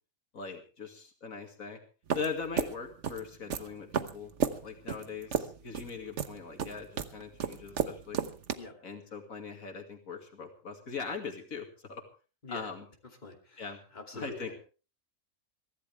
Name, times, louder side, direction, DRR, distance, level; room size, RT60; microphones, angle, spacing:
voice 1, 0.3-1.8 2.1-4.3 4.6-8.2 8.8-12.0 12.5-12.8 13.6-13.8 14.1-14.6, left 5 dB, 85° left, 4 dB, 2.6 m, -40 dB
sound 1, 2.1-8.5, right 7 dB, 60° right, 1.3 m, -33 dB
voice 2, 13.2-14.6, left 2 dB, 35° left, 2 dB, 2.8 m, -45 dB
23.0 x 15.0 x 3.4 m, 0.35 s
omnidirectional pair, 1.4 m